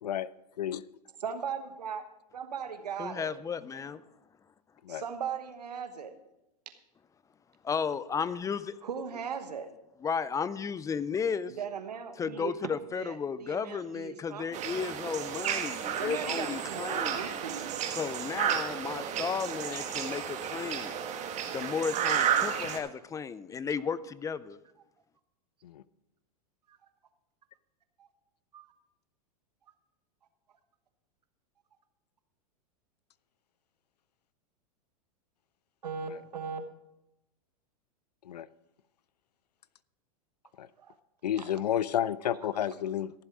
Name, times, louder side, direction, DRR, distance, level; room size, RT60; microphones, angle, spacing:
voice 1, 0.0-0.3 0.6-0.8 4.8-5.0 25.6-25.8 38.2-38.5 40.6-40.7 41.2-43.1, left 10 dB, 85° left, 0.5 m, -31 dB
voice 2, 1.2-2.1 2.3-3.3 4.9-6.1 8.8-9.7 11.6-12.5 12.9-14.9 16.0-17.7 26.7-26.8 28.0-28.1 28.5-28.6 35.8-36.6 40.8-40.9 41.4-41.5, right 7 dB, 85° right, 1.2 m, -38 dB
voice 3, 3.0-4.0 7.6-8.8 10.0-11.5 12.2-17.4 18.0-20.9 21.5-24.6, left 6 dB, 15° left, 0.4 m, -34 dB
sound 1, 14.5-22.8, right 8 dB, 35° right, 1.6 m, -32 dB
14.5 x 7.5 x 4.9 m
hypercardioid pair, 100°, 20 cm